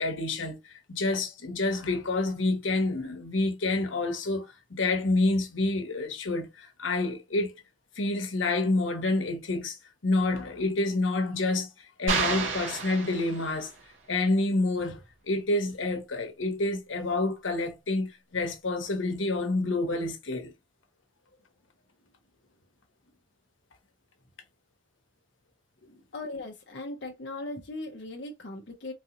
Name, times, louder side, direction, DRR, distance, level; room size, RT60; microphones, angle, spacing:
voice 1, 0.0-7.5 8.0-9.8 10.0-11.7 12.0-13.7 14.1-15.0 15.3-20.5, left 2 dB, 85° left, 1.0 m, -28 dB
sound 1, 12.1-13.8, right 4 dB, 85° right, 1.6 m, -30 dB
voice 2, 26.1-28.9, left 2 dB, 60° left, 0.7 m, -38 dB
3.9 x 2.9 x 2.5 m
head